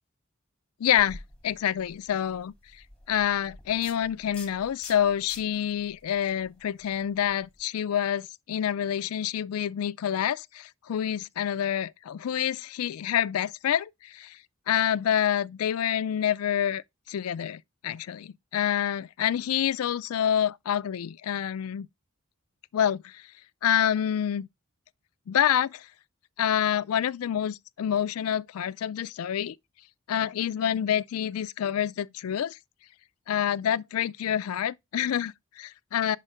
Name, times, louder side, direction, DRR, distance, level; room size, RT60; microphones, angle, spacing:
voice 1, 0.8-2.5 3.1-14.4 14.7-16.8 17.1-21.9 22.7-23.2 23.6-24.5 25.3-25.9 26.4-29.6 30.1-32.6 33.3-36.2, left 9 dB, 85° left, 0.4 m, -27 dB
sound 1, 1.0-7.6, left 2 dB, 5° left, 1.9 m, -49 dB
5.5 x 5.3 x 4.9 m
head